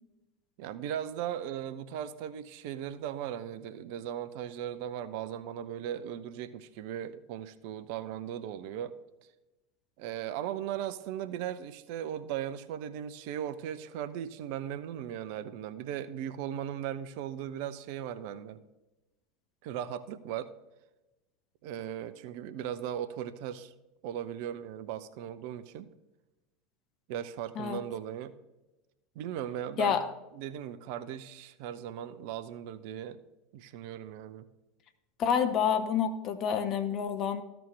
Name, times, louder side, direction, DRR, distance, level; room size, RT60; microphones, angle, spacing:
voice 1, 0.6-9.0 10.0-18.6 19.6-20.5 21.6-23.7 24.0-25.9 27.1-28.3 29.2-30.0 30.3-33.2 33.5-34.5, right 10 dB, 55° right, 13 dB, 0.5 m, -38 dB
voice 2, 35.2-37.4, left 7 dB, 40° left, 9 dB, 0.9 m, -28 dB
14.0 x 6.0 x 3.3 m, 1.0 s
figure-of-eight pair, 75°, 0 cm